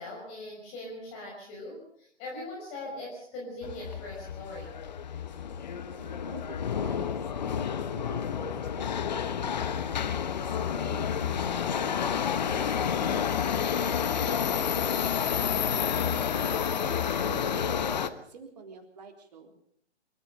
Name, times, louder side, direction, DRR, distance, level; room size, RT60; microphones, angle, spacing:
voice 1, 0.0-4.7, left 2 dB, 20° left, -2 dB, 5.7 m, -41 dB
Subway metro underground, 3.6-18.1, left 8 dB, 40° left, 1.2 m, -30 dB
voice 2, 5.9-9.9 10.4-12.0 12.4-13.5 14.2-16.2 16.8-19.6, right 4 dB, 35° right, 4 dB, 3.9 m, -47 dB
27.0 x 14.0 x 6.8 m, 0.65 s
figure-of-eight pair, 145°, 35 cm